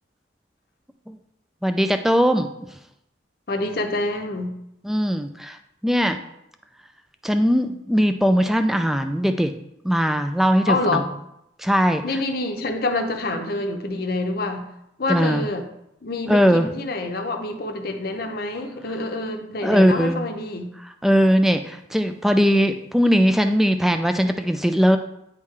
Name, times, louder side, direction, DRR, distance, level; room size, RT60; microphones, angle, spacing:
voice 1, 1.6-2.5 4.8-5.6 5.8-6.2 7.2-9.5 9.8-11.0 11.6-12.2 15.1-15.4 16.3-16.7 19.6-20.3 20.8-25.0, equal, ahead, 7 dB, 0.3 m, -19 dB
voice 2, 3.5-4.5 10.7-11.1 12.0-14.6 15.0-15.7 16.0-20.7, left 2 dB, 55° left, 5 dB, 0.7 m, -26 dB
9.3 x 3.7 x 3.2 m, 0.81 s
head